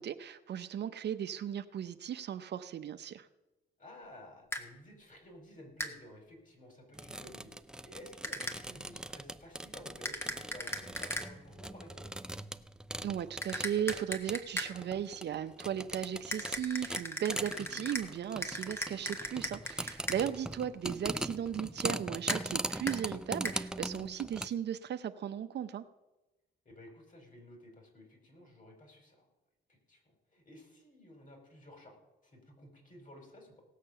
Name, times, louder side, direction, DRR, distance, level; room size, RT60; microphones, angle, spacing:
voice 1, 0.0-3.3 13.0-25.8, right 9 dB, 60° right, 10 dB, 0.7 m, -36 dB
voice 2, 3.8-7.5 7.8-12.1 20.1-20.8 26.6-29.2 29.7-30.0 30.3-31.9 32.2-33.6, left 1 dB, 40° left, 3 dB, 5.0 m, -54 dB
sound 1, 4.5-4.6 5.8-5.9 8.2-8.6 10.0-11.3 13.4-14.7 16.3-18.1 18.4-20.2 22.3-22.4 22.9-23.0 23.4-23.6, left 1 dB, 10° left, 1.6 m, -38 dB
sound 2, 6.9-24.5, right 1 dB, 5° right, 0.5 m, -41 dB
17.5 x 6.7 x 6.7 m, 1.0 s
cardioid pair, 90°, 20 cm